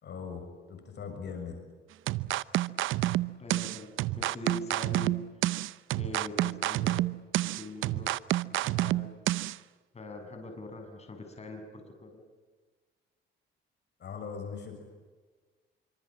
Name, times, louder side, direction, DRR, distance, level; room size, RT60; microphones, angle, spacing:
voice 1, 0.0-1.6 14.0-14.8, left 6 dB, 60° left, 5 dB, 6.5 m, -40 dB
sound 1, 2.1-9.6, right 15 dB, 85° right, 0.7 m, -29 dB
voice 2, 3.4-5.2 5.5-5.6 6.0-7.0 7.4-8.1 8.5-9.1 9.9-12.2, left 1 dB, 35° left, 4 dB, 6.9 m, -43 dB
26.5 x 25.5 x 7.6 m, 1.4 s
cardioid pair, 90°, 20 cm